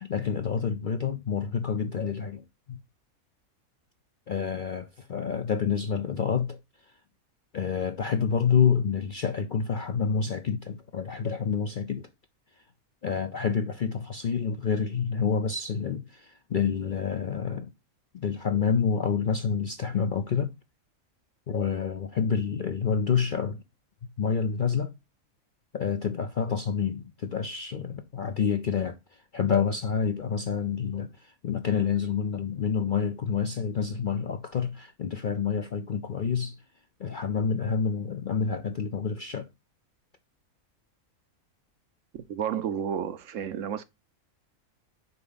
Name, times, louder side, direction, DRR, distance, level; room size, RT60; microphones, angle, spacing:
voice 1, 0.0-2.4 2.7-2.8 4.3-6.6 7.5-12.1 13.0-17.7 18.1-20.5 21.5-23.6 24.2-24.9 25.7-29.0 29.3-36.6 37.0-39.5, left 6 dB, 55° left, 0.5 m, -28 dB
voice 2, 42.3-43.8, right 8 dB, 65° right, 1.0 m, -31 dB
6.7 x 4.8 x 3.9 m
omnidirectional pair, 1.5 m